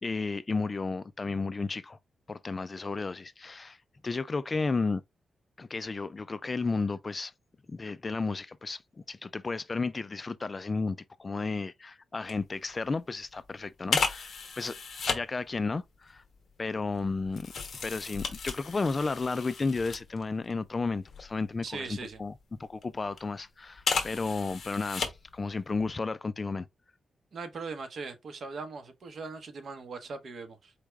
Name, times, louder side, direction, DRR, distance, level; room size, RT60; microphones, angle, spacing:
voice 1, 0.0-2.0 2.3-3.8 4.0-5.0 5.6-7.3 7.7-8.8 9.1-14.8 15.1-16.2 16.6-17.5 17.8-22.3 22.6-26.7, left 3 dB, 30° left, 0.3 m, -33 dB
sound 1, 12.3-12.4 12.8-12.9 13.9-15.2 16.0-20.5 20.9-22.2 22.8-23.2 23.8-25.4 25.7-25.9, left 5 dB, 50° left, 1.2 m, -34 dB
voice 2, 21.6-22.2 27.3-30.7, right 4 dB, 55° right, 1.0 m, -40 dB
4.5 x 3.3 x 3.4 m
wide cardioid pair, 140°, 0 cm